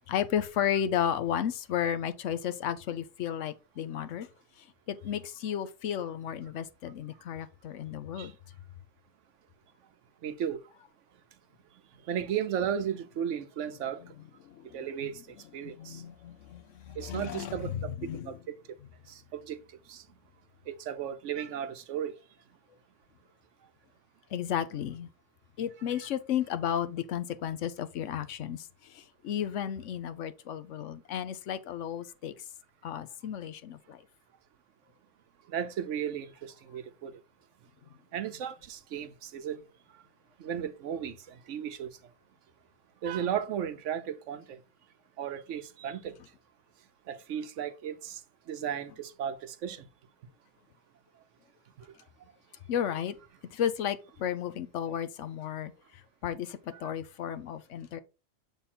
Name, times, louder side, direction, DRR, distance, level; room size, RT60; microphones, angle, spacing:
voice 1, 0.1-4.3 4.9-8.4 14.4-15.1 15.6-18.4 24.3-25.1 25.6-32.4 32.8-34.0 52.7-53.1 53.5-55.7 56.2-58.0, left 9 dB, 75° left, 1.0 m, -33 dB
voice 2, 10.2-10.6 12.1-14.0 14.7-15.1 15.5-16.0 17.0-17.9 18.3-18.6 19.1-19.6 19.9-20.0 20.7-22.1 35.5-37.1 38.1-39.6 40.4-41.2 41.5-41.9 43.0-44.6 45.2-46.1 47.1-48.2 48.5-49.8, right 9 dB, 75° right, 1.0 m, -35 dB
7.2 x 3.5 x 4.2 m
omnidirectional pair, 1.3 m